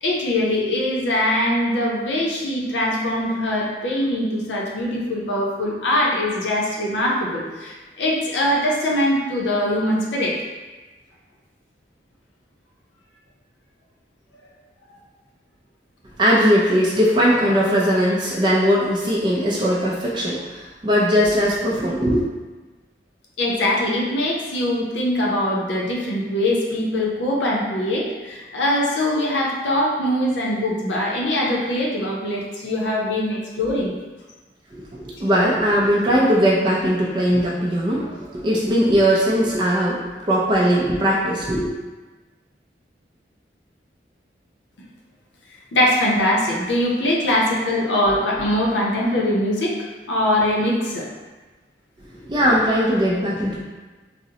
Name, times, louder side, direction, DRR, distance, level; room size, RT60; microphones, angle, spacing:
voice 1, 0.0-10.3 23.4-33.9 45.7-51.1, left 1 dB, 90° left, -3 dB, 0.6 m, -22 dB
voice 2, 16.2-22.2 34.7-40.0 40.3-41.7 52.3-53.6, equal, 25° right, -5 dB, 0.3 m, -19 dB
3.7 x 2.0 x 2.7 m, 1.3 s
head